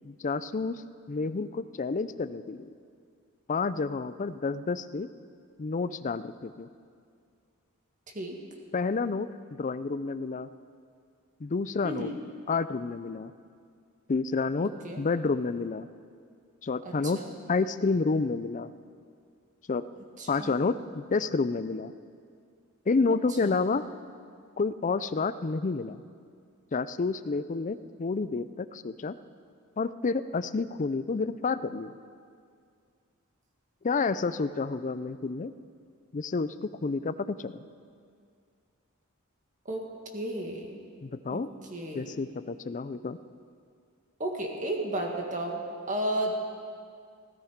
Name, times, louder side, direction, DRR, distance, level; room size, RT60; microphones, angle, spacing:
voice 1, 0.0-0.8 1.1-2.7 3.5-5.1 5.6-6.7 8.7-9.3 9.6-10.5 11.4-12.1 12.5-13.3 14.1-14.7 15.0-15.9 16.6-17.2 17.5-18.7 19.7-19.8 20.3-21.9 22.9-23.8 24.6-26.0 26.7-29.1 29.8-31.9 33.8-35.5 36.1-37.6 41.0-41.5 41.9-43.2, left 4 dB, 35° left, 13 dB, 0.4 m, -29 dB
voice 2, 11.8-12.2 14.8-15.0 16.8-17.3 20.2-20.6 23.4-23.6 39.7-39.9 40.1-40.8 41.3-41.4 41.7-42.2 44.2-46.4, right 1 dB, 35° right, 1 dB, 1.9 m, -33 dB
17.0 x 14.5 x 5.1 m, 2.2 s
head